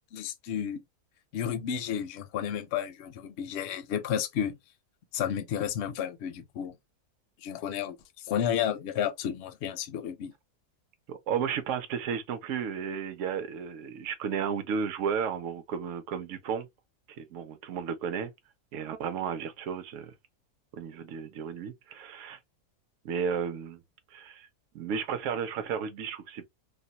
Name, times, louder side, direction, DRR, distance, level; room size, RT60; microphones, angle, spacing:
voice 1, 0.1-0.8 1.3-4.6 5.1-6.7 7.4-8.0 8.2-10.3, left 9 dB, 70° left, 0.6 m, -32 dB
voice 2, 11.1-16.7 17.2-18.3 18.7-20.1 20.7-22.4 23.0-23.8 24.1-24.5 24.7-26.5, right 7 dB, 65° right, 0.8 m, -33 dB
2.6 x 2.2 x 2.8 m
omnidirectional pair, 1.6 m